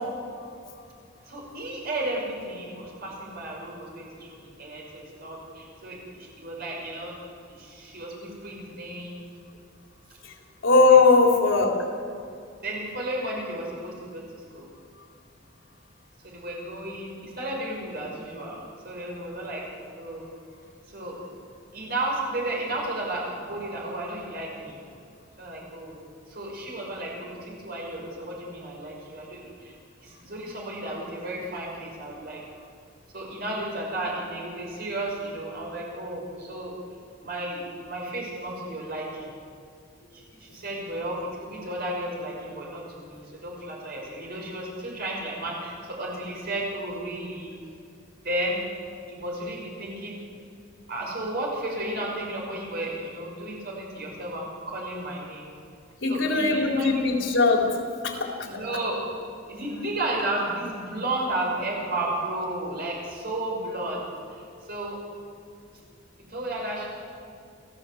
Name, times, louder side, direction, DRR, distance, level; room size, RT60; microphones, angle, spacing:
voice 1, 1.3-7.1 7.5-9.3 10.9-11.0 12.6-14.7 16.2-19.6 20.0-20.3 20.9-21.2 21.7-24.8 25.4-26.0 26.3-29.7 30.0-32.4 33.1-36.8 37.2-39.3 40.1-47.5 48.2-48.6 49.1-50.2 50.9-55.5 56.1-56.9 58.5-59.0 59.5-64.0 64.3-65.0 66.3-66.9, right 1 dB, 55° right, -2 dB, 6.0 m, -33 dB
voice 2, 10.6-11.7 56.0-57.7 58.0-58.4, left 3 dB, 75° left, 0 dB, 3.9 m, -19 dB
29.0 x 15.5 x 8.1 m, 2.4 s
head